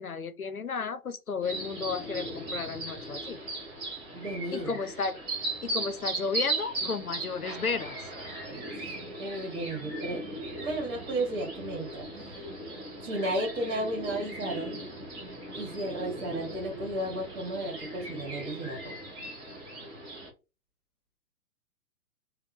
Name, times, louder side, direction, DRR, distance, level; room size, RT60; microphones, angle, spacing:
voice 1, 0.0-3.4 4.5-5.2 5.6-8.1, left 5 dB, 85° left, 0.7 m, -33 dB
sound 1, 1.4-20.3, right 2 dB, 10° right, 0.7 m, -38 dB
voice 2, 4.1-4.7 8.4-8.6 9.2-12.4 13.0-14.8 15.5-19.0, right 1 dB, 35° right, 1.6 m, -34 dB
3.5 x 2.2 x 2.6 m
figure-of-eight pair, 120°, 42 cm